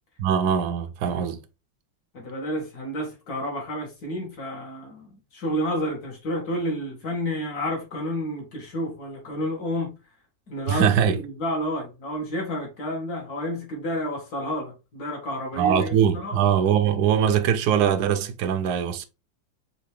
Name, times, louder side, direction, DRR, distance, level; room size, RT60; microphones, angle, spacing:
voice 1, 0.2-1.4 10.7-11.2 15.6-19.1, right 8 dB, 70° right, 1.0 m, -22 dB
voice 2, 2.1-9.9 10.5-16.4, equal, 55° left, 2.1 m, -30 dB
5.1 x 2.7 x 3.1 m
omnidirectional pair, 2.0 m